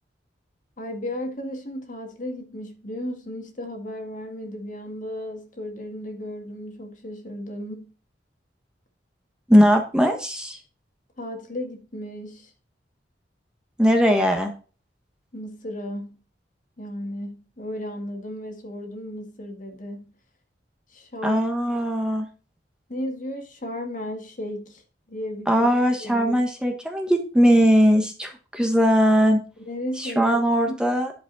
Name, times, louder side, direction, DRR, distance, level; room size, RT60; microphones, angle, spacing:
voice 1, 0.8-7.9 11.2-12.5 15.3-16.2 16.8-20.1 20.9-21.5 22.9-24.8 25.1-25.7 26.0-26.4 29.6-30.4 30.7-30.8, left 1 dB, 45° left, 1.9 m, -34 dB
voice 2, 9.5-10.6 13.8-14.5 21.2-22.3 25.5-29.4 30.0-31.1, equal, 5° right, 1.2 m, -19 dB
11.0 x 5.2 x 4.0 m
head